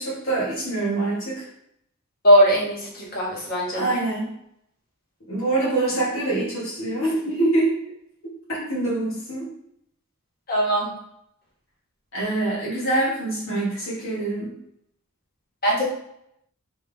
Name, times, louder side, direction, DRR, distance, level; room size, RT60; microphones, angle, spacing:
voice 1, 0.0-1.4 3.7-4.3 5.3-7.8 8.5-9.5 12.1-14.5, right 2 dB, 70° left, -5 dB, 1.5 m, -25 dB
voice 2, 2.2-3.8 10.5-10.9 15.6-15.8, equal, 45° left, -4 dB, 1.4 m, -19 dB
3.5 x 3.5 x 3.5 m, 0.74 s
head